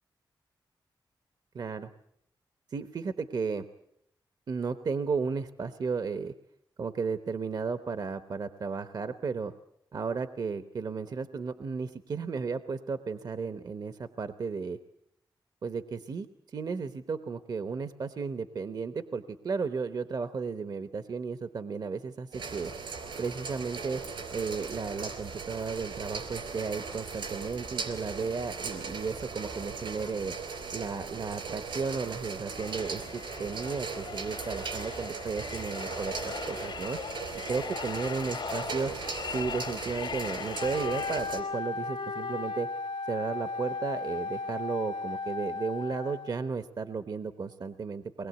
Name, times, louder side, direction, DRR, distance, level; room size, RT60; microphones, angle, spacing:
voice 1, 1.5-1.9 2.7-3.7 4.5-6.3 6.8-9.5 9.9-14.8 15.6-22.7 23.2-24.0 24.3-30.3 30.7-37.2 37.5-38.9 39.3-42.7 43.1-48.3, right 5 dB, 55° right, 11 dB, 0.9 m, -34 dB
sound 1, 22.3-41.4, right 5 dB, 80° right, 3.8 m, -38 dB
sound 2, 32.6-41.2, left 6 dB, 85° left, 2.3 m, -40 dB
Wind instrument woodwind instrument, 40.6-46.5, left 4 dB, 65° left, 0.8 m, -35 dB
23.0 x 20.5 x 8.1 m, 0.75 s
wide cardioid pair, 105°, 8 cm